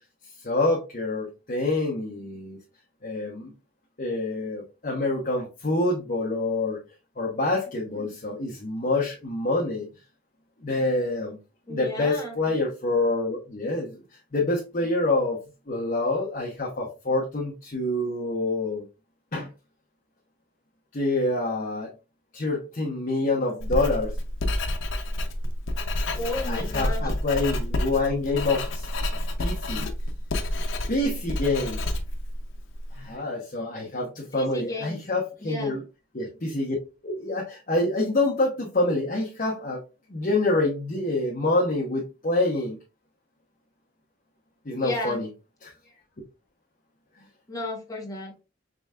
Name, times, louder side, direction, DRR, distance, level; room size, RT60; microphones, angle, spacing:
voice 1, 0.4-2.6 3.0-3.5 4.0-6.8 7.2-9.9 10.6-11.4 11.7-14.0 14.3-15.4 15.7-18.8 19.3-19.5 20.9-21.9 22.3-24.1 26.5-28.9 29.4-29.9 30.9-31.8 32.9-35.8 36.1-36.7 37.0-39.8 40.1-42.8 44.6-45.3 45.6-45.7, left 2 dB, 40° left, -4 dB, 1.0 m, -26 dB
voice 2, 11.7-12.4 26.1-27.1 34.3-35.0 35.4-35.8 44.8-45.2 47.5-48.3, left 2 dB, 20° left, -1 dB, 1.1 m, -33 dB
Writing, 23.6-33.0, left 1 dB, 75° left, 0.7 m, -29 dB
5.0 x 3.3 x 2.4 m, 0.29 s
head